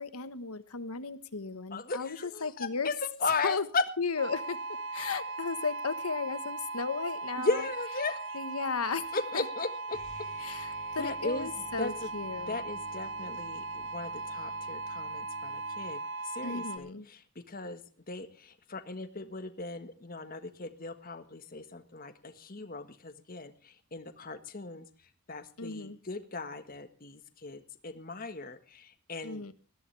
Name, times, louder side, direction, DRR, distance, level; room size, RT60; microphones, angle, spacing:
voice 1, 0.0-2.9 3.4-3.7 4.0-4.6 4.9-7.6 8.3-9.0 9.3-9.4 10.4-12.6 16.4-17.1 25.6-26.0 29.2-29.5, left 5 dB, 85° left, 12 dB, 1.3 m, -35 dB
voice 2, 1.7-3.8 7.4-8.4 9.1-10.0 11.0-12.1 12.5-29.5, left 3 dB, 40° left, 9 dB, 1.6 m, -37 dB
sound 1, 4.2-16.8, right 3 dB, 55° right, 2.7 m, -38 dB
sound 2, 9.8-15.9, right 2 dB, 40° right, 5.0 m, -54 dB
20.5 x 14.5 x 3.4 m, 0.38 s
head